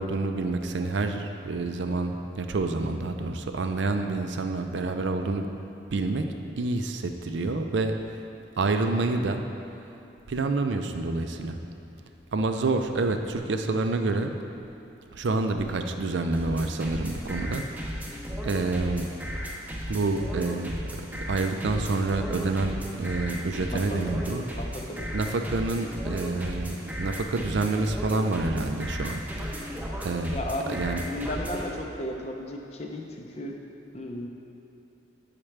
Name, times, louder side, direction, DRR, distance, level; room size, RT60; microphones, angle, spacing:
voice 1, 0.0-5.5 5.9-6.3 6.6-8.0 8.6-9.4 10.3-11.6 12.3-14.3 15.1-18.2 18.4-19.1 19.9-20.7 21.3-24.4 25.1-29.7 30.0-30.4 30.7-31.0, right 3 dB, 70° right, 6 dB, 0.5 m, -28 dB
sound 1, 16.3-31.7, equal, 10° right, 0.8 m, -35 dB
voice 2, 23.6-24.2 24.5-25.2 30.3-33.6 33.9-34.3, left 1 dB, 35° left, 2 dB, 0.6 m, -35 dB
8.7 x 5.8 x 3.3 m, 2.9 s
head